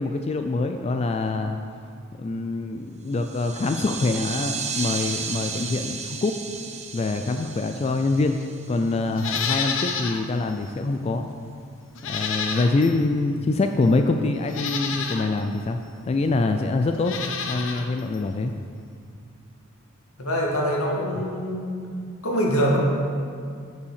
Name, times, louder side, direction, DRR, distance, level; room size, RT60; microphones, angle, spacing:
voice 1, 0.0-1.6 2.2-6.4 6.9-8.4 8.7-11.3 12.0-15.8 16.1-17.2 17.5-18.5, left 3 dB, 30° left, 5 dB, 0.3 m, -25 dB
sound 1, 3.1-9.2, right 6 dB, 30° right, 0.6 m, -34 dB
Livestock farm animals working animals, 9.1-10.2 10.6-10.7 11.9-13.0 13.8-13.9 14.5-15.3 16.9-17.9 18.1-18.2, left 6 dB, 60° left, 0.7 m, -29 dB
voice 2, 20.2-21.8 22.2-22.8, equal, 85° left, -2 dB, 1.8 m, -24 dB
7.7 x 5.6 x 6.5 m, 2.2 s
head